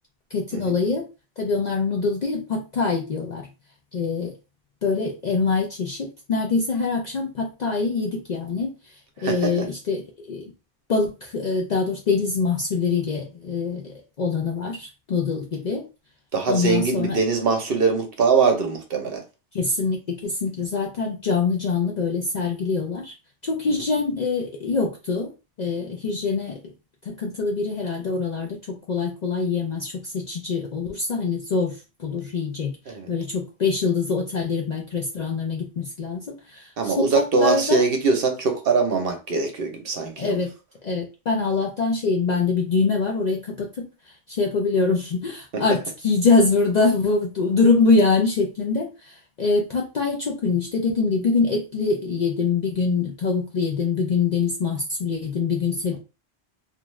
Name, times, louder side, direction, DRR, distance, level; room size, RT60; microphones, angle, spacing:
voice 1, 0.3-1.0 1.4-3.5 3.9-4.3 4.8-8.7 9.2-10.5 10.9-15.8 16.5-17.2 19.5-23.1 23.4-25.3 25.6-26.6 27.1-32.8 33.1-37.8 40.2-40.5 40.8-43.8 44.3-56.0, left 4 dB, 55° left, 0 dB, 0.5 m, -24 dB
voice 2, 9.2-9.5 16.3-19.2 32.9-33.1 36.8-40.4, right 4 dB, 60° right, 3 dB, 0.8 m, -22 dB
2.5 x 2.3 x 3.0 m, 0.30 s
omnidirectional pair, 1.2 m